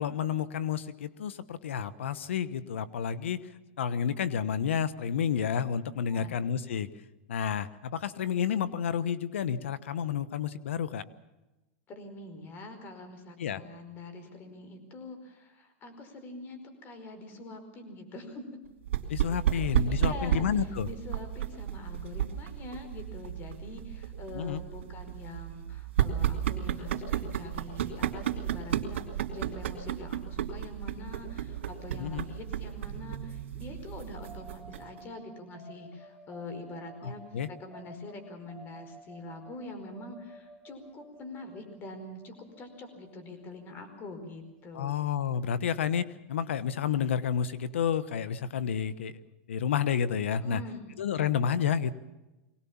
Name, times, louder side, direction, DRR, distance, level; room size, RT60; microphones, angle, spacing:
voice 1, 0.0-3.4 3.8-6.9 7.3-11.1 13.4-13.6 19.1-20.9 24.3-24.6 32.0-32.2 37.0-37.5 44.7-49.2 49.5-50.6 51.0-51.9, left 8 dB, 90° left, 16 dB, 1.1 m, -30 dB
voice 2, 11.9-18.4 19.5-20.5 20.8-29.0 29.3-37.2 37.6-45.0 50.4-50.9, left 2 dB, 30° left, 8 dB, 4.8 m, -44 dB
sound 1, 18.9-35.0, right 10 dB, 80° right, 2.7 m, -33 dB
sound 2, 34.2-44.9, right 2 dB, 10° left, 6.8 m, -53 dB
23.0 x 19.0 x 7.3 m, 1.0 s
supercardioid pair, 135°, 6 cm